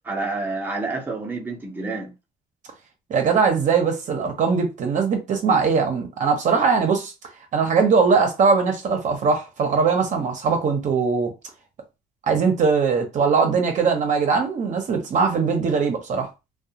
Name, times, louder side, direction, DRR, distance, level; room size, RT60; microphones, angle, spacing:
voice 1, 0.0-2.1, right 3 dB, 10° right, 0.7 m, -28 dB
voice 2, 3.1-7.1 7.5-11.3 12.3-16.3, right 5 dB, 45° right, 0.7 m, -20 dB
2.3 x 2.2 x 2.8 m
cardioid pair, 110°, 17 cm